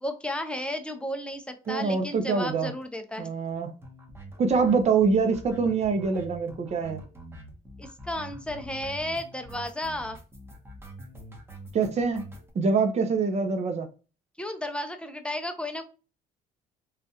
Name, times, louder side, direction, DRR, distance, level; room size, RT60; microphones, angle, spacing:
voice 1, 0.0-3.3 7.8-10.2 14.4-15.8, left 1 dB, 5° left, 0.5 m, -33 dB
sound 1, 1.6-1.9 2.1-2.2 2.5-2.6 2.8-2.9 3.1-12.5, right 1 dB, 15° right, 0.9 m, -45 dB
voice 2, 1.7-2.7 3.2-3.7 4.4-7.0 11.7-12.3 12.5-13.9, right 4 dB, 40° right, 0.7 m, -25 dB
3.3 x 2.3 x 2.7 m
cardioid pair, 110°, 17 cm